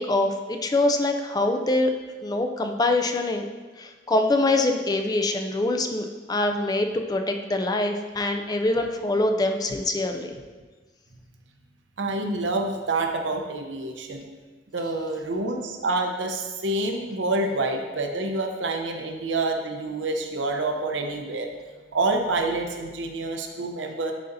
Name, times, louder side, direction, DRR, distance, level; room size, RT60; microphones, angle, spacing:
voice 1, 0.0-1.9 2.2-3.4 3.8-10.3, left 2 dB, 20° left, 5 dB, 0.4 m, -24 dB
voice 2, 12.0-14.3 14.7-24.1, right 2 dB, 85° right, 4 dB, 0.7 m, -27 dB
10.5 x 4.0 x 2.6 m, 1.3 s
head